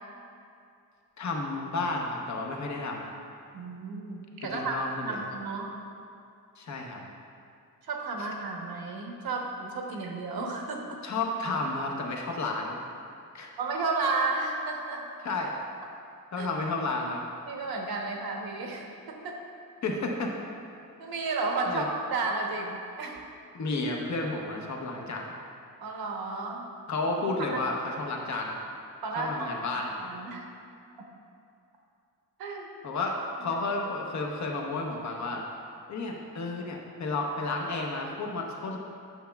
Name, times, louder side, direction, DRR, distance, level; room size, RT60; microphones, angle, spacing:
voice 1, 1.2-3.1 4.5-5.2 6.6-7.0 8.2-8.3 11.0-12.8 13.3-13.5 15.2-15.5 16.3-17.2 19.8-20.3 21.7-21.9 23.5-25.3 26.9-28.6 29.2-29.9 32.8-35.4 35.9-38.8, left 3 dB, 50° left, 0 dB, 0.8 m, -32 dB
voice 2, 3.5-4.8 5.1-5.8 7.9-11.0 13.6-15.0 16.4-16.5 17.5-19.4 21.0-23.3 25.8-26.7 27.5-27.6 29.0-29.5 30.0-30.5 32.4-32.7 33.5-33.6, right 3 dB, 85° right, 1 dB, 1.0 m, -32 dB
9.2 x 6.7 x 2.3 m, 2.5 s
wide cardioid pair, 155°, 35 cm